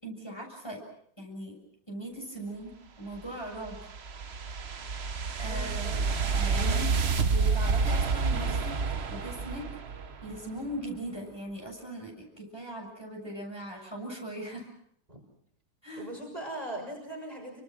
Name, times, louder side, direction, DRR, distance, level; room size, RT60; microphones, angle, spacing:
voice 1, 0.0-0.8 1.2-1.5 1.9-2.7 3.0-3.8 5.4-6.0 6.3-6.9 7.2-8.7 9.1-9.7 10.2-14.7 15.8-16.1, right 1 dB, 10° left, -1 dB, 7.1 m, -39 dB
sound 1, 3.2-10.4, right 4 dB, 40° right, 1.1 m, -29 dB
voice 2, 5.5-6.2 6.5-6.9 15.1-15.2 16.0-17.6, right 1 dB, 15° right, 1 dB, 6.1 m, -40 dB
29.0 x 25.5 x 6.3 m, 0.71 s
omnidirectional pair, 2.3 m